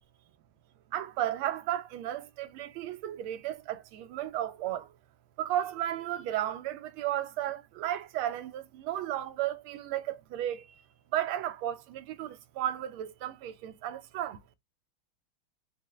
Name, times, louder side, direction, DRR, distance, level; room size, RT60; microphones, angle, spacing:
voice 1, 0.9-4.9 5.4-10.8 11.1-14.4, right 12 dB, 85° right, 1.4 m, -34 dB
4.4 x 2.0 x 3.3 m
omnidirectional pair, 2.3 m